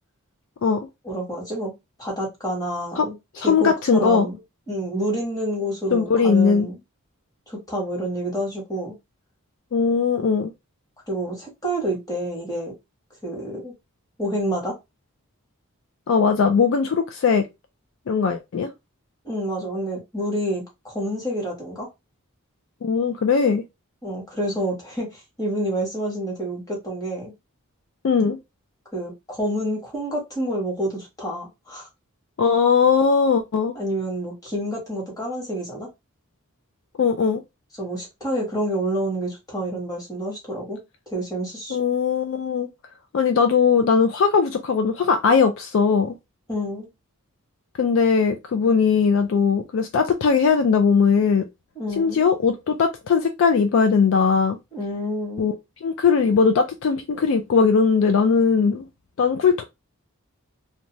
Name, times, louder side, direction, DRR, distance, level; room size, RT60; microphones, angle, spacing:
voice 1, 1.0-1.7 2.0-3.1 3.4-4.4 4.7-6.8 7.5-8.9 11.1-12.7 13.2-13.7 14.2-14.7 19.2-21.9 24.0-27.3 28.9-31.9 33.7-35.9 37.8-40.8 41.1-41.8 46.5-46.9 51.7-52.2 54.7-55.5, right 1 dB, 15° left, 1.2 m, -28 dB
voice 2, 3.3-4.3 5.9-6.7 9.7-10.5 16.1-17.5 18.1-18.7 22.8-23.6 28.0-28.4 32.4-33.7 37.0-37.4 41.7-42.7 43.1-46.1 47.8-51.5 52.0-54.6 55.4-55.5 55.8-58.9 59.2-59.6, left 5 dB, 60° left, 0.3 m, -19 dB
2.6 x 2.2 x 2.9 m
head